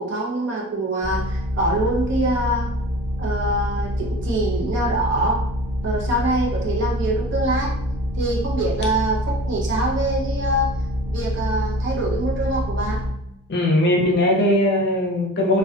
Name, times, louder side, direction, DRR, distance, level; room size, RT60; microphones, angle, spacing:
voice 1, 0.0-2.7 3.2-5.4 5.8-7.7 8.1-10.7 11.1-13.0, right 1 dB, 55° right, -2 dB, 0.6 m, -24 dB
sound 1, 1.0-13.1, equal, 5° left, 1.0 m, -26 dB
voice 2, 13.5-15.6, left 1 dB, 50° left, -1 dB, 0.5 m, -19 dB
2.4 x 2.2 x 2.5 m, 0.82 s
head